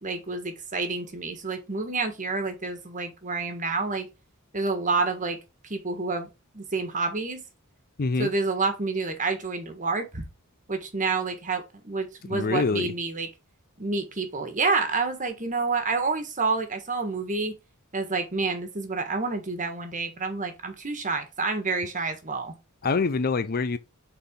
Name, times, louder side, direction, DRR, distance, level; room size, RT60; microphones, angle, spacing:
voice 1, 0.0-4.1 4.5-5.4 5.6-6.3 6.5-7.4 8.2-10.2 10.7-13.3 13.8-17.6 17.9-22.5, right 4 dB, 35° right, 1.5 m, -28 dB
voice 2, 8.0-8.3 12.3-12.9 22.8-23.8, left 4 dB, 45° left, 0.5 m, -25 dB
6.9 x 4.1 x 3.7 m
head